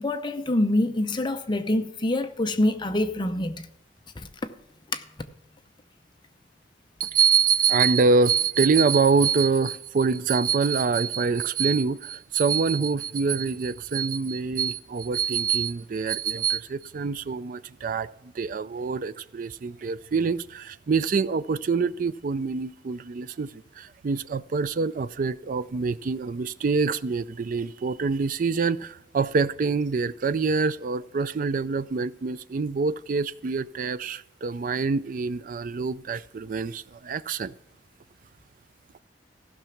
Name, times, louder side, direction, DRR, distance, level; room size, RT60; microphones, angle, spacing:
voice 1, 0.0-3.7 4.2-4.3 4.9-5.0, left 1 dB, 25° left, 0.7 m, -25 dB
voice 2, 7.0-37.5, right 5 dB, 45° right, 0.4 m, -25 dB
15.5 x 6.0 x 5.8 m
head